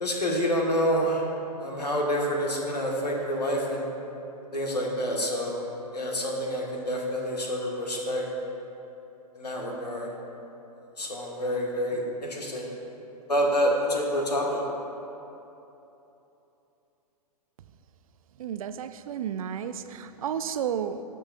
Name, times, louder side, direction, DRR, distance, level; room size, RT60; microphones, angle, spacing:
voice 1, 0.0-1.2 1.6-3.9 4.5-5.6 5.9-8.2 9.4-10.1 11.0-12.6 13.3-14.6, equal, 90° left, -1 dB, 1.5 m, -27 dB
voice 2, 18.4-21.0, right 8 dB, 60° right, 11 dB, 0.4 m, -32 dB
16.0 x 5.4 x 2.4 m, 3.0 s
figure-of-eight pair, 115°, 20 cm